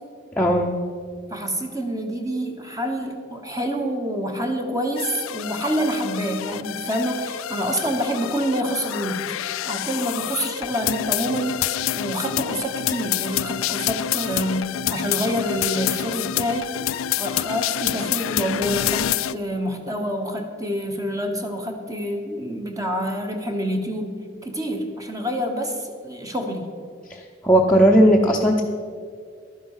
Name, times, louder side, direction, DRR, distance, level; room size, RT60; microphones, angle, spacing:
voice 1, 0.4-0.7 27.1-28.6, equal, 5° left, -2 dB, 0.7 m, -17 dB
voice 2, 1.3-9.3 9.6-16.7 17.2-26.7, equal, 15° right, 4 dB, 1.1 m, -27 dB
sound 1, 5.0-19.3, left 11 dB, 85° left, 0.3 m, -27 dB
11.5 x 10.0 x 5.6 m, 2.1 s
head